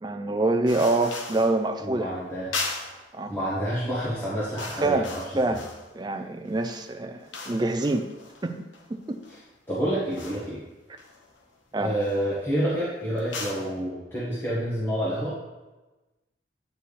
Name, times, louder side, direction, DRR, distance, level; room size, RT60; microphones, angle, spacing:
voice 1, 0.0-2.1 3.1-3.3 4.8-5.1 5.4-5.6 5.9-8.0 8.4-9.2 11.7-11.9, right 2 dB, 20° right, 6 dB, 0.3 m, -26 dB
sound 1, 0.7-1.6 2.5-3.1 3.8-4.0 4.3-6.0 6.4-9.5 10.1-10.5 11.0-11.5 12.0-12.3 13.2-13.7, left 3 dB, 85° left, 0.9 m, -38 dB
voice 2, 1.8-2.5 3.3-5.6 9.3-9.4 9.7-10.6 11.8-15.3, equal, 10° left, -10 dB, 1.5 m, -28 dB
9.0 x 4.6 x 3.3 m, 1.1 s
head